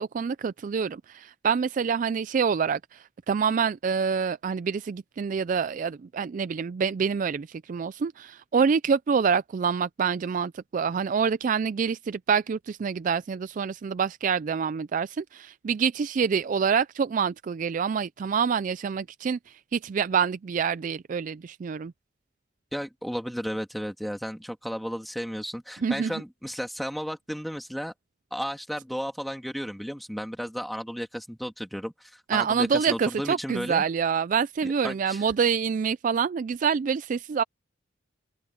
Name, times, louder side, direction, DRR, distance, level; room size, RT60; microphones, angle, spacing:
voice 1, 0.0-21.9 25.8-26.1 32.3-37.4, right 6 dB, 40° right, 0.3 m, -26 dB
voice 2, 22.7-27.9 28.3-33.8 34.8-35.2, equal, ahead, 2.4 m, -33 dB
open air
head